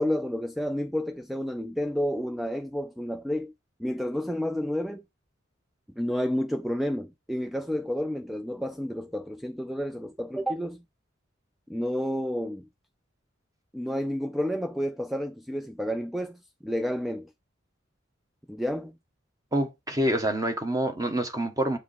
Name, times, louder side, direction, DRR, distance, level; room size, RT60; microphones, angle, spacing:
voice 1, 0.0-3.5 3.8-5.0 6.0-10.8 11.7-12.7 13.7-17.3 18.5-19.0, equal, ahead, 0.4 m, -30 dB
voice 2, 19.5-21.8, right 1 dB, 20° right, 1.2 m, -27 dB
7.3 x 4.8 x 4.0 m
head